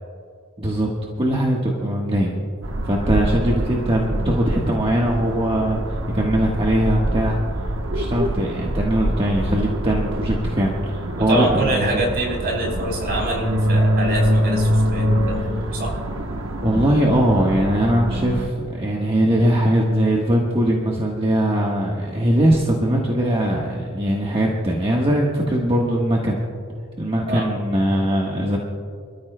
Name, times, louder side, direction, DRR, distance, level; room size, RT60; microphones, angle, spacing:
voice 1, 0.6-0.9 1.2-2.3 2.8-5.8 6.1-7.4 7.9-12.0 15.3-15.4 16.6-26.4 27.0-28.6, right 1 dB, 25° right, -2 dB, 1.3 m, -20 dB
sound 1, 2.6-18.5, equal, 65° right, 1.0 m, -24 dB
voice 2, 11.2-15.9 27.3-27.5, right 1 dB, 45° right, 0 dB, 3.7 m, -25 dB
28.0 x 13.5 x 2.2 m, 2.2 s
head